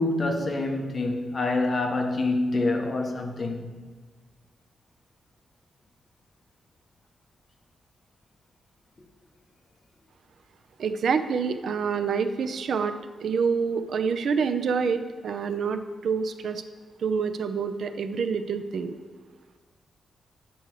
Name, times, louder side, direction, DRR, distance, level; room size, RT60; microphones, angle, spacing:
voice 1, 0.0-3.7, left 2 dB, 35° left, 1.1 m, -26 dB
voice 2, 10.8-12.9 13.2-16.6 17.0-18.9, right 5 dB, 65° right, 0.5 m, -27 dB
9.0 x 6.2 x 4.7 m
wide cardioid pair, 135°, 0 cm